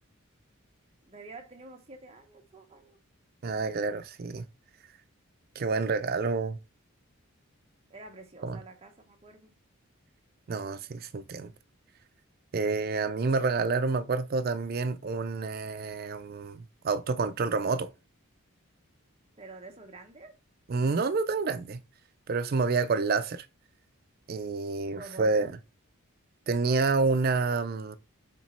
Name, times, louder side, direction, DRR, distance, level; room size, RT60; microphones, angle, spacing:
voice 1, 1.1-3.0 7.9-9.5 19.4-20.4 24.9-25.5, right 3 dB, 30° right, 0.8 m, -48 dB
voice 2, 3.4-4.4 5.6-6.6 8.4-8.6 10.5-11.5 12.5-17.9 20.7-21.8 22.3-23.5 24.3-25.5 26.5-28.0, right 4 dB, 45° right, 0.4 m, -28 dB
4.4 x 2.9 x 4.1 m
head